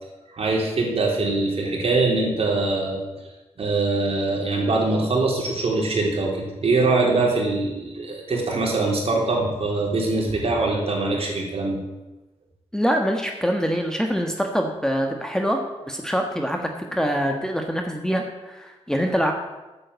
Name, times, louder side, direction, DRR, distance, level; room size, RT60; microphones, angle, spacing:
voice 1, 0.3-3.0 3.6-11.8, right 3 dB, 55° right, -2 dB, 3.8 m, -23 dB
voice 2, 12.7-15.6 15.9-19.3, equal, 5° left, 3 dB, 1.5 m, -24 dB
9.4 x 7.6 x 8.1 m, 1.1 s
cardioid pair, 80°, 12 cm